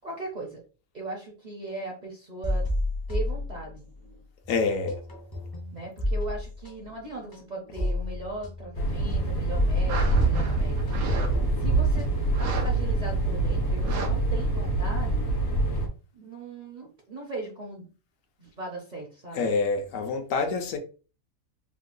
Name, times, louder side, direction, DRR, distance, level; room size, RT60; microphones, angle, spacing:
voice 1, 0.0-0.6 0.9-2.6 3.1-3.9 5.7-10.9 11.6-12.1 12.4-15.3 16.1-17.9 18.4-19.5, right 2 dB, 40° right, 0.7 m, -38 dB
sound 1, 2.4-4.1 4.4-13.1, left 1 dB, 30° left, 0.4 m, -32 dB
voice 2, 4.5-4.9 19.3-20.8, left 4 dB, 75° left, 1.0 m, -26 dB
sound 2, 8.7-15.9, right 2 dB, 90° left, 1.3 m, -25 dB
sound 3, 9.9-11.3 11.6-11.8 12.2-12.7 13.0-13.1 13.8-14.1 14.4-14.5, right 4 dB, 90° right, 1.1 m, -34 dB
3.7 x 2.2 x 2.6 m
omnidirectional pair, 1.5 m